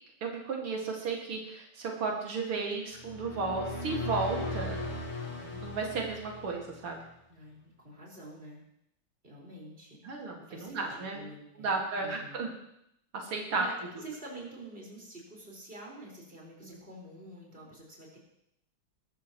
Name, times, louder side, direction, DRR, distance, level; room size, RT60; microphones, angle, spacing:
voice 1, 0.2-4.8 5.4-7.0 10.0-11.2 11.6-12.5 13.1-13.6 16.6-16.7, right 4 dB, 85° right, -1 dB, 2.9 m, -34 dB
sound 1, 3.0-6.9, left 2 dB, 35° left, 2.3 m, -38 dB
voice 2, 7.3-8.6 9.2-10.0 10.5-12.5 13.5-18.2, right 1 dB, 25° right, -3 dB, 5.0 m, -47 dB
21.5 x 13.5 x 3.1 m, 0.78 s
omnidirectional pair, 2.4 m